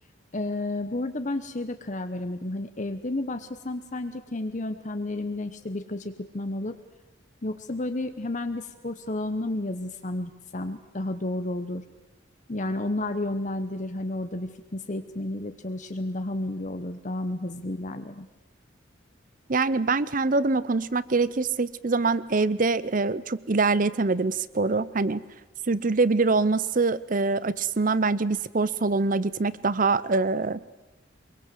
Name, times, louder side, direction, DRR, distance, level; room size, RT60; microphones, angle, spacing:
voice 1, 0.3-6.8 7.4-11.8 12.5-18.3, left 2 dB, 40° left, 8 dB, 1.0 m, -31 dB
voice 2, 19.5-25.2 25.7-30.6, right 3 dB, 45° right, 18 dB, 0.7 m, -24 dB
24.0 x 22.5 x 7.7 m, 1.1 s
head